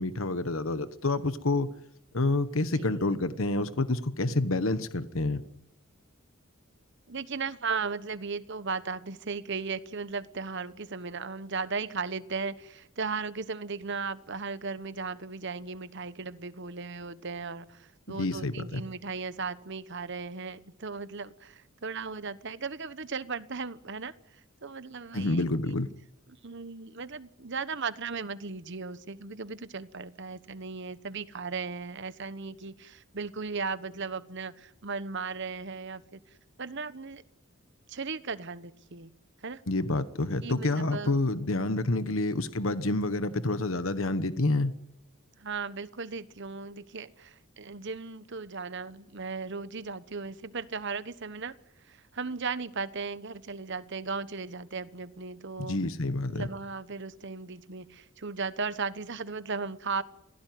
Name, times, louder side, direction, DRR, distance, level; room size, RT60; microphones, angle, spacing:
voice 1, 0.0-1.7 2.1-5.4 18.1-18.8 25.1-25.9 39.7-44.7 55.6-56.5, left 2 dB, 70° left, 12 dB, 1.2 m, -28 dB
voice 2, 7.1-24.1 24.6-25.8 26.4-36.2 36.6-37.2 37.9-39.1 39.4-39.6 40.4-41.2 42.1-42.2 45.4-51.5 51.8-55.8 56.3-60.0, right 4 dB, 55° right, 14 dB, 1.2 m, -36 dB
26.0 x 17.0 x 9.3 m, 0.84 s
head